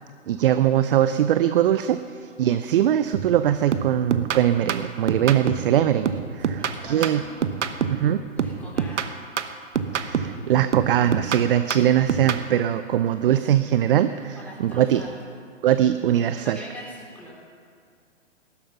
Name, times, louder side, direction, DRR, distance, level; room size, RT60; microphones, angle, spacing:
voice 1, 0.3-7.2 7.9-8.2 9.9-14.4 14.6-15.0 15.6-16.6, right 11 dB, 45° right, 11 dB, 0.6 m, -21 dB
sound 1, 3.1-3.4 3.7-5.7 6.0-8.1 8.4-10.4 10.7-12.5, right 7 dB, 65° right, 1.1 m, -27 dB
voice 2, 6.4-7.5 8.4-9.2 14.3-15.2 16.4-17.4, equal, 5° left, -5 dB, 3.9 m, -42 dB
19.0 x 11.5 x 5.8 m, 2.2 s
hypercardioid pair, 130°, 38 cm